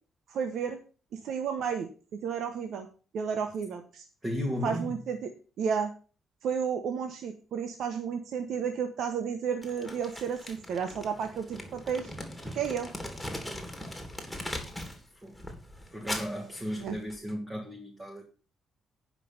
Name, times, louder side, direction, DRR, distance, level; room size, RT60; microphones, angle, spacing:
voice 1, 0.3-0.8 1.1-1.9 2.2-2.9 3.1-4.0 4.6-5.3 5.6-5.9 6.4-12.1 12.5-12.9 16.8-17.0, right 7 dB, 70° right, 1.2 m, -32 dB
voice 2, 4.2-5.0 15.2-15.4 15.9-18.2, equal, 20° right, 2.5 m, -35 dB
Crumpling crinkling, 9.6-15.0 15.3-17.3, left 1 dB, ahead, 3.3 m, -40 dB
9.5 x 5.8 x 7.1 m
cardioid pair, 90°, 0 cm